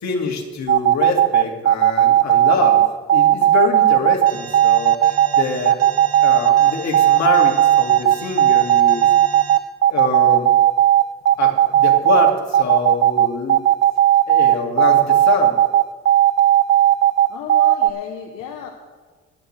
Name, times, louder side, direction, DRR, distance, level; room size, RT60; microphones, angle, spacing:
voice 1, 0.0-2.8 3.1-5.8 6.2-9.1 9.9-10.5 11.4-13.6 14.3-15.6, left 4 dB, 65° left, 1 dB, 2.1 m, -25 dB
sound 1, 0.7-17.9, right 12 dB, 40° right, 0.4 m, -14 dB
Alarm, 4.3-9.6, right 7 dB, 55° right, 0.9 m, -35 dB
voice 2, 17.3-18.7, left 8 dB, 90° left, 3 dB, 0.9 m, -32 dB
20.0 x 8.7 x 3.2 m, 1.4 s
cardioid pair, 90°, 30 cm